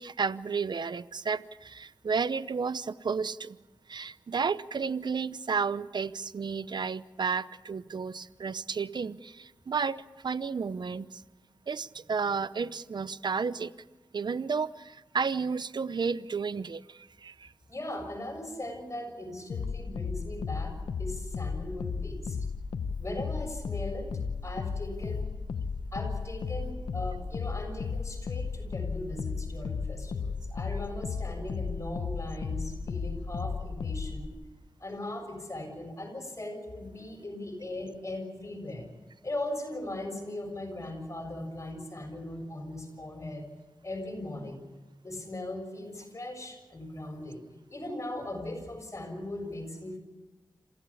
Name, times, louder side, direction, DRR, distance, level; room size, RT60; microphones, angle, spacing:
voice 1, 0.0-3.6 3.9-11.2 11.7-13.7 14.1-17.5, right 5 dB, 65° right, 16 dB, 0.7 m, -32 dB
voice 2, 17.7-22.4 23.0-24.1 24.4-25.3 25.9-34.4 34.8-38.9 39.2-43.5 43.8-44.7 45.0-47.4 47.7-50.0, left 1 dB, 35° left, 4 dB, 7.0 m, -39 dB
sound 1, 19.5-34.3, left 5 dB, 85° left, 1.2 m, -34 dB
27.5 x 15.5 x 8.6 m, 1.2 s
cardioid pair, 45°, 8 cm